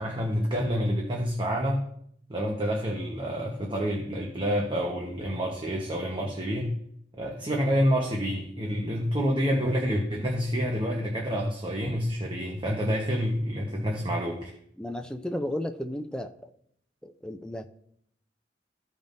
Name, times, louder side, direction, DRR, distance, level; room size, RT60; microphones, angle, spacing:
voice 1, 0.0-1.9 2.3-6.8 7.2-14.5, equal, 30° right, 0 dB, 1.1 m, -28 dB
voice 2, 14.8-16.3 17.0-17.6, left 1 dB, 5° left, 7 dB, 0.5 m, -33 dB
15.0 x 5.3 x 2.6 m, 0.68 s
head